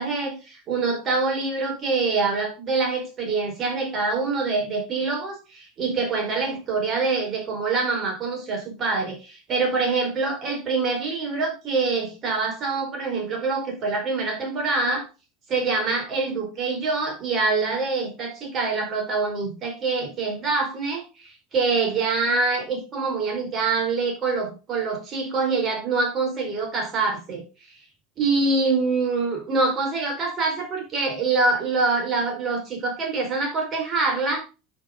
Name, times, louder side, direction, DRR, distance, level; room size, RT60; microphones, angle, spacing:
voice 1, 0.0-15.0 15.5-27.4 28.2-34.5, right 3 dB, 35° right, 1 dB, 4.9 m, -25 dB
10.5 x 6.6 x 3.9 m, 0.30 s
figure-of-eight pair, 75°, 0 cm